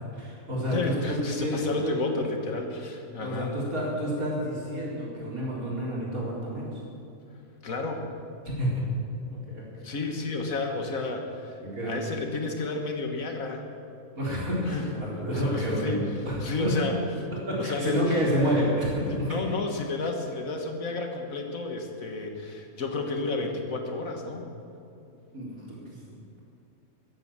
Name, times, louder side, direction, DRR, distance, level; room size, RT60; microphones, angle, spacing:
voice 1, 0.1-1.9 3.2-6.7 8.6-8.8 9.3-9.6 11.6-11.9 14.1-16.8 17.5-19.4 25.3-26.0, equal, 80° right, -5 dB, 4.7 m, -29 dB
voice 2, 0.7-3.6 7.6-8.1 9.8-13.7 14.6-14.8 15.3-16.1 16.4-17.0 17.6-18.2 19.1-24.5, left 3 dB, 70° left, 3 dB, 2.0 m, -31 dB
14.0 x 11.0 x 7.4 m, 2.7 s
omnidirectional pair, 1.5 m